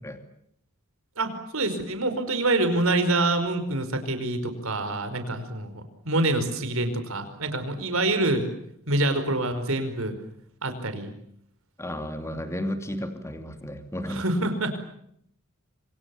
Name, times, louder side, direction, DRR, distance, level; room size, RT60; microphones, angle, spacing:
voice 1, 1.2-8.5 8.9-10.2 10.6-11.1 14.1-14.8, right 2 dB, 70° right, 9 dB, 5.2 m, -26 dB
voice 2, 11.8-14.2, equal, 15° left, 7 dB, 2.7 m, -33 dB
27.0 x 26.5 x 7.2 m, 0.70 s
head